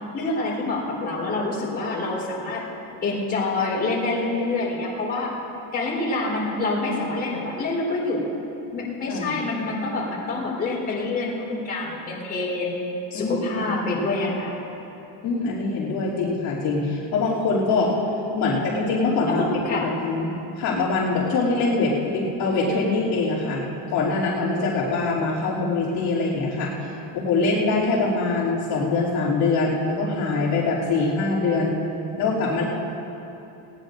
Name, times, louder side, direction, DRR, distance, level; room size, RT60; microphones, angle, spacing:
voice 1, 0.1-2.6 3.0-5.3 5.7-8.2 8.7-12.8 13.1-14.6 18.5-18.6 19.3-19.9, left 2 dB, 20° left, -5 dB, 4.1 m, -26 dB
voice 2, 13.1-13.7 15.2-18.0 18.3-20.3 20.6-23.6 23.9-31.8 32.2-32.6, left 3 dB, 55° left, -9 dB, 3.0 m, -23 dB
20.0 x 18.5 x 2.6 m, 2.9 s
cardioid pair, 180°, 45 cm